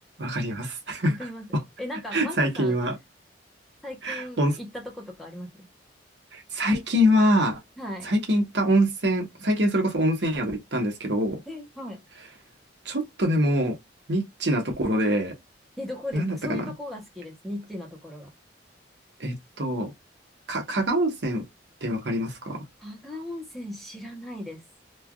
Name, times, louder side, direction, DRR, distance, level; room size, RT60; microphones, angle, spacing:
voice 1, 0.2-1.1 2.1-3.0 4.0-4.6 6.3-7.6 8.0-11.4 12.8-13.8 14.1-15.4 16.1-16.6 19.2-19.9 20.5-21.4 21.8-22.6, equal, 65° right, 1.0 m, -24 dB
voice 2, 1.1-1.4 1.8-2.8 3.8-5.7 7.8-8.1 11.5-12.0 15.8-18.3 22.8-24.6, left 1 dB, ahead, 0.7 m, -37 dB
3.2 x 2.3 x 2.2 m
head